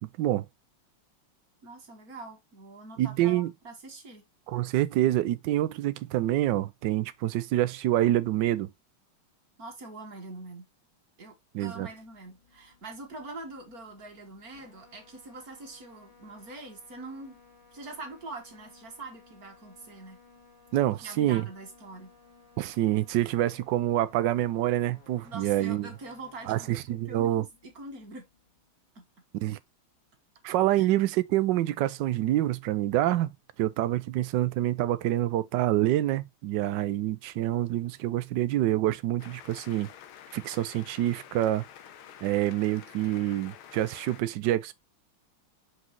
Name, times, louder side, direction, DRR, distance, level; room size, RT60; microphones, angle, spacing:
voice 1, 0.0-0.5 3.0-3.5 4.5-8.7 11.5-11.9 20.7-21.5 22.6-25.9 26.5-27.5 29.4-29.6 30.4-33.3 33.6-39.9 40.3-41.6 42.2-44.7, right 14 dB, 70° right, 1.2 m, -27 dB
voice 2, 1.6-4.2 9.6-10.7 11.2-17.4 17.7-20.2 20.9-22.1 25.2-28.2 29.0-29.1 30.8-30.9, right 2 dB, 45° right, 2.0 m, -44 dB
sound 1, 11.6-28.8, left 4 dB, 50° left, 4.3 m, -59 dB
sound 2, 39.2-44.2, left 9 dB, 80° left, 1.7 m, -49 dB
6.4 x 6.0 x 2.9 m
omnidirectional pair, 2.3 m